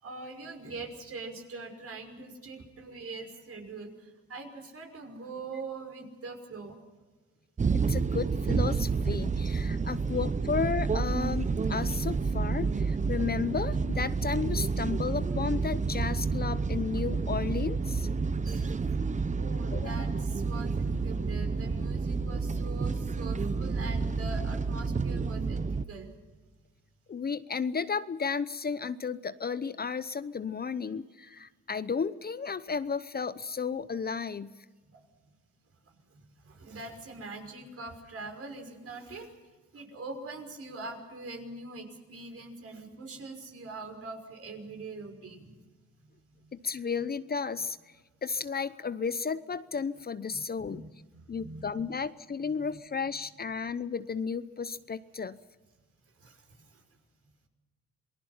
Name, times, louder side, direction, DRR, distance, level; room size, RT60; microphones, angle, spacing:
voice 1, 0.0-6.8 10.0-10.2 18.4-19.0 19.4-26.1 34.8-35.0 35.9-39.3 39.7-45.6 46.0-46.5 50.3-52.1 52.4-52.8 56.2-56.8, right 3 dB, 50° right, 4 dB, 5.7 m, -43 dB
sound 1, 7.6-25.9, right 4 dB, 25° right, 0.7 m, -30 dB
voice 2, 7.7-18.1 19.7-20.0 27.1-34.6 46.5-47.8 48.2-50.8 51.3-55.4, left 5 dB, 30° left, 14 dB, 0.8 m, -33 dB
28.0 x 19.5 x 5.8 m, 1.3 s
cardioid pair, 90°, 30 cm